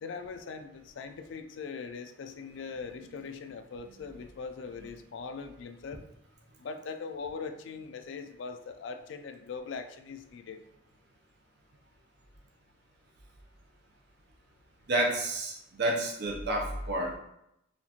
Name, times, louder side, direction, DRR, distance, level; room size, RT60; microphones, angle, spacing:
voice 1, 0.0-6.0 6.6-10.6, left 5 dB, 65° left, 8 dB, 0.3 m, -41 dB
voice 2, 14.9-17.2, right 1 dB, 55° right, 0 dB, 0.6 m, -30 dB
4.3 x 2.4 x 2.8 m, 0.79 s
head